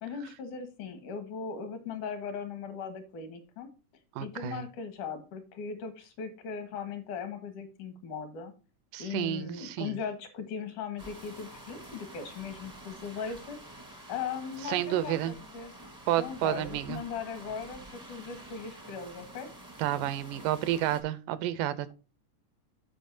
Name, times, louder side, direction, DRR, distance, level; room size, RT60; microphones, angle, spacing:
voice 1, 0.0-3.7 4.2-8.5 9.0-13.6 14.1-15.7 16.2-19.5, left 6 dB, 75° left, 2.9 m, -38 dB
voice 2, 4.2-4.6 8.9-10.0 14.7-15.3 16.1-17.0 19.8-21.9, right 13 dB, 85° right, 2.3 m, -30 dB
sound 1, 11.0-21.0, right 1 dB, 15° right, 0.6 m, -48 dB
13.5 x 5.3 x 2.7 m
omnidirectional pair, 3.7 m